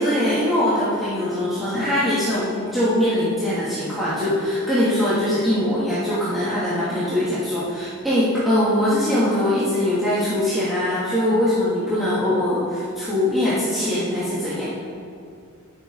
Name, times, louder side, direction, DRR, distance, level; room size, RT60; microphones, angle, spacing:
voice 1, 0.0-14.6, left 1 dB, ahead, -13 dB, 2.7 m, -22 dB
22.5 x 8.1 x 4.0 m, 2.4 s
head